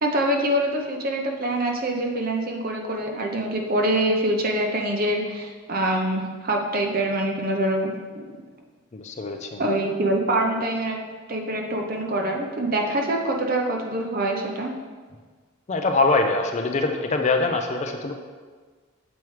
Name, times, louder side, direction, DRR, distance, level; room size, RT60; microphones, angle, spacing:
voice 1, 0.0-8.3 9.6-11.0 11.3-14.7, right 1 dB, 45° right, 2 dB, 0.6 m, -25 dB
voice 2, 8.9-9.6 15.7-18.1, left 3 dB, 35° left, 4 dB, 0.4 m, -23 dB
7.1 x 4.6 x 3.2 m, 1.5 s
head